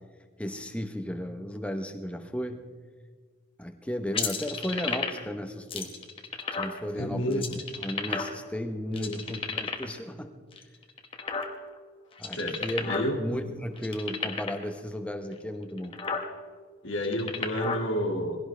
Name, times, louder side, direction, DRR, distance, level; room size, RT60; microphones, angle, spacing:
voice 1, 0.4-2.6 3.6-5.9 6.5-10.3 12.2-15.9, equal, 5° left, 6 dB, 0.9 m, -34 dB
sound 1, 4.1-5.3 5.7-6.8 7.3-8.6 8.9-10.0 10.5-11.8 12.1-13.1 13.4-13.5 13.8-14.6 15.3-15.4 15.8-16.3 16.9-17.8, left 5 dB, 25° left, 1.2 m, -32 dB
voice 2, 6.9-7.6 9.0-9.2 12.3-13.2 16.8-18.4, equal, 65° left, 2 dB, 2.1 m, -30 dB
21.0 x 16.5 x 3.4 m, 1.5 s
head